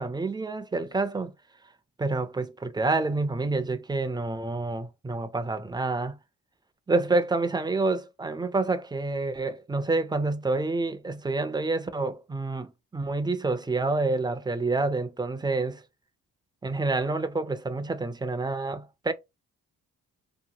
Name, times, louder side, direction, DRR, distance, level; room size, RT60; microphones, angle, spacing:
voice 1, 0.0-1.3 2.0-6.2 6.9-15.8 16.6-19.1, right 3 dB, 15° right, 0.3 m, -28 dB
2.8 x 2.1 x 2.8 m
cardioid pair, 80°, 33 cm